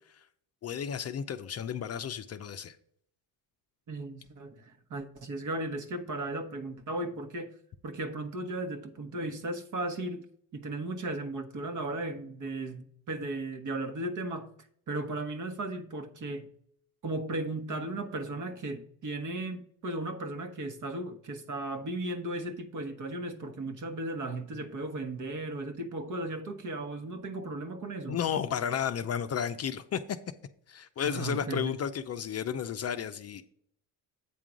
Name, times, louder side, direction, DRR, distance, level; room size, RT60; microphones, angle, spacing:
voice 1, 0.6-2.8 28.1-30.0 30.7-33.4, left 8 dB, 40° left, 0.5 m, -33 dB
voice 2, 3.9-7.5 7.8-10.2 10.5-14.5 14.9-16.5 17.0-28.2 31.0-31.8, right 2 dB, 45° right, 1.2 m, -36 dB
8.4 x 3.7 x 6.1 m
supercardioid pair, 85°, 41 cm